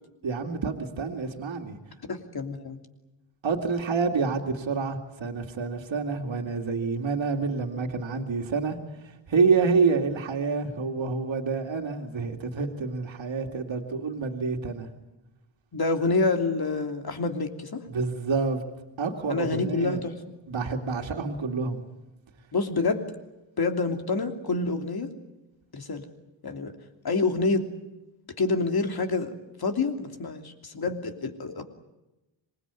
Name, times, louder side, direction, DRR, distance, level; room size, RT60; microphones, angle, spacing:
voice 1, 0.2-1.8 3.4-8.8 9.0-14.9 17.9-18.6 19.0-20.0 20.5-21.8, right 4 dB, 75° right, 2 dB, 2.6 m, -28 dB
voice 2, 2.1-2.8 15.7-17.8 19.3-20.1 22.5-23.0 23.6-25.1 25.7-26.1 26.4-26.7 27.0-27.7 28.4-31.6, left 3 dB, 50° left, 6 dB, 3.0 m, -27 dB
26.0 x 21.0 x 9.8 m, 0.97 s
wide cardioid pair, 125°, 47 cm